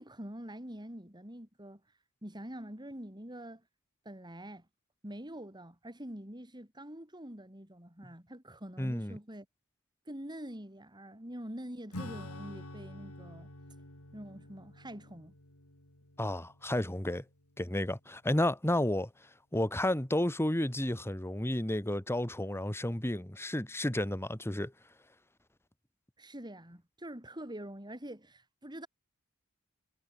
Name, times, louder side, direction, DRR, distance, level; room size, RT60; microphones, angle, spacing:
voice 1, 0.0-1.8 2.2-3.6 4.0-4.7 5.0-9.5 10.1-13.5 14.1-15.3 26.2-28.9, right 1 dB, 20° right, 7.8 m, -45 dB
voice 2, 8.8-9.2 16.2-17.2 17.6-19.1 19.5-24.7, left 1 dB, 10° left, 1.7 m, -31 dB
Acoustic guitar / Strum, 11.9-17.9, left 1 dB, 80° left, 6.8 m, -48 dB
head